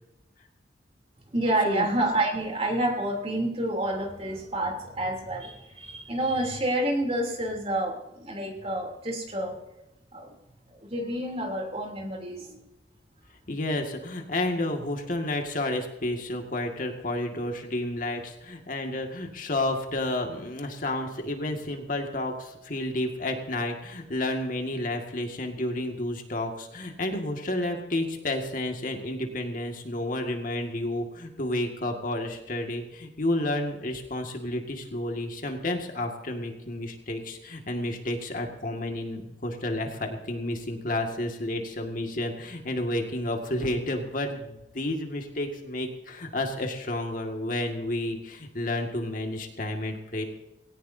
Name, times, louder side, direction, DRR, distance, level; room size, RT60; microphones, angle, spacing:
voice 1, 1.3-9.5 10.1-10.4 10.7-12.6, right 1 dB, 35° right, 1 dB, 3.3 m, -29 dB
voice 2, 13.5-50.2, left 1 dB, 50° left, 3 dB, 2.0 m, -31 dB
19.5 x 17.5 x 2.8 m, 0.97 s
head